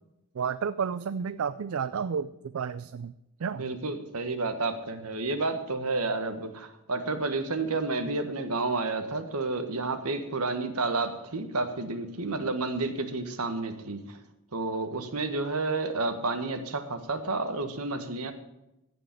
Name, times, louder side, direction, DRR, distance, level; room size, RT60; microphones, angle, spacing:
voice 1, 0.3-3.1 3.4-3.7, right 6 dB, 75° right, 14 dB, 0.4 m, -31 dB
voice 2, 3.5-14.2 14.5-18.3, right 3 dB, 90° right, 8 dB, 1.5 m, -30 dB
15.0 x 5.2 x 8.4 m, 0.90 s
head